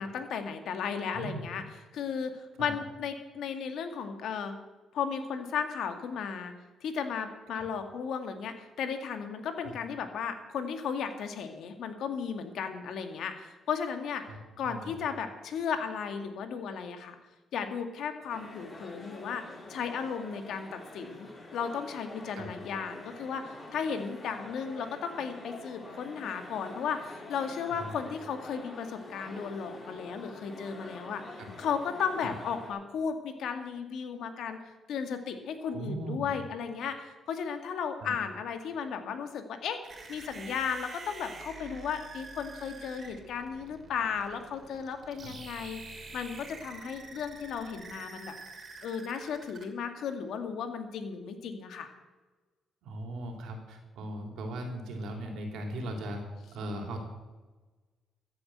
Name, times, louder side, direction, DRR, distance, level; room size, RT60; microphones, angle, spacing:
voice 1, 0.0-1.6 1.9-4.6 4.9-6.5 6.8-14.2 14.6-17.2 17.5-19.4 19.7-34.6 34.9-39.8 40.1-48.4 48.8-51.9, left 6 dB, 75° left, 7 dB, 1.9 m, -35 dB
voice 2, 1.1-1.4 2.6-2.7 7.5-7.6 9.6-9.7 14.2-14.9 22.4-22.5 27.7-27.9 31.4-31.5 32.2-32.3 35.7-36.3 38.0-38.1 45.2-45.4 52.8-56.2 56.5-57.0, right 1 dB, 80° right, 2 dB, 3.4 m, -38 dB
sound 1, 18.3-32.7, left 2 dB, 30° left, 5.2 m, -47 dB
sound 2, 39.8-49.6, right 4 dB, 40° right, 2.9 m, -47 dB
14.0 x 8.1 x 7.9 m, 1.2 s
cardioid pair, 90°, 0 cm